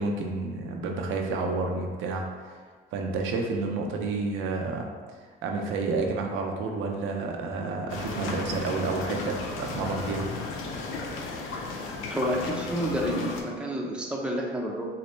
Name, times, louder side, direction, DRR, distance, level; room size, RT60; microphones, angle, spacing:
voice 1, 0.0-2.6 2.9-4.9 5.4-10.3, right 3 dB, 90° right, 2 dB, 0.5 m, -30 dB
sound 1, 7.9-13.4, left 3 dB, 90° left, 0.5 m, -34 dB
voice 2, 12.1-14.9, equal, 5° right, -2 dB, 0.6 m, -29 dB
4.2 x 2.0 x 3.1 m, 1.5 s
cardioid pair, 90°, 20 cm